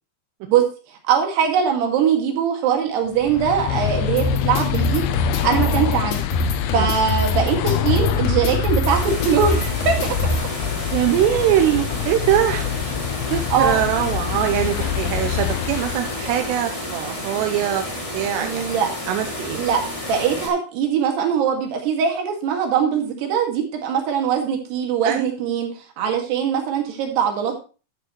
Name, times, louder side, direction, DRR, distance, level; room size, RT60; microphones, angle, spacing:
voice 1, 1.0-5.1 5.4-6.2 6.7-10.2 13.5-13.8 18.4-18.9 19.6-19.8 20.1-25.7 26.0-27.6, right 7 dB, 70° right, 2 dB, 4.0 m, -21 dB
sound 1, 3.1-16.7, left 11 dB, 80° left, 2.4 m, -25 dB
sound 2, 4.2-10.4, equal, 60° left, 2.8 m, -25 dB
sound 3, 8.8-20.5, left 1 dB, 15° left, 1.1 m, -31 dB
voice 2, 10.9-12.7 13.3-17.8 18.1-18.8 19.1-19.6 25.0-25.3, right 11 dB, 85° right, 5 dB, 2.9 m, -22 dB
11.5 x 8.7 x 3.0 m, 0.34 s
omnidirectional pair, 5.0 m